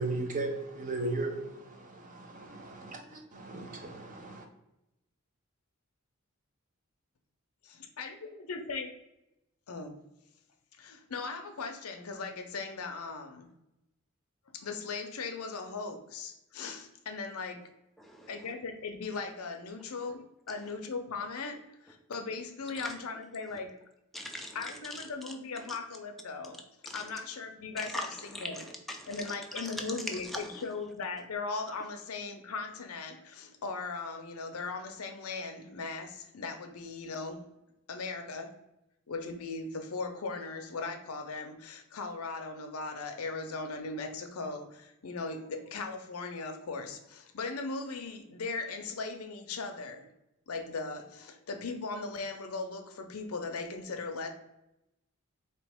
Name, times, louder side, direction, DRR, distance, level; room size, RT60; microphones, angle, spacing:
voice 1, 0.0-4.5, right 2 dB, 35° right, 0.7 m, -36 dB
voice 2, 7.8-9.0 9.7-10.0 10.8-13.5 14.5-17.6 18.3-23.8 24.5-26.6 26.9-28.7 29.1-37.5 37.9-38.5 39.1-50.1 50.5-54.3, left 4 dB, 85° left, 0.6 m, -38 dB
voice 3, 18.0-18.3 22.8-22.9 24.1-24.6 25.3-25.4 26.9-27.1 27.8-28.1 28.3-29.7 30.3-30.4, left 1 dB, ahead, 0.5 m, -40 dB
4.1 x 2.8 x 3.4 m
head